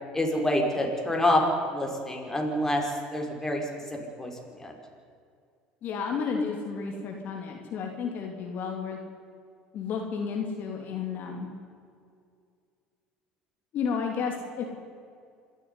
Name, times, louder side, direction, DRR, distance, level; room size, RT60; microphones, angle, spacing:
voice 1, 0.1-1.4 1.7-2.8 3.1-3.6 4.2-4.3 4.6-4.7, left 1 dB, 10° left, 1 dB, 5.2 m, -26 dB
voice 2, 5.8-9.0 9.7-11.5 13.7-14.6, left 5 dB, 55° left, 2 dB, 3.2 m, -32 dB
27.0 x 9.9 x 9.9 m, 2.3 s
hypercardioid pair, 75°, 4 cm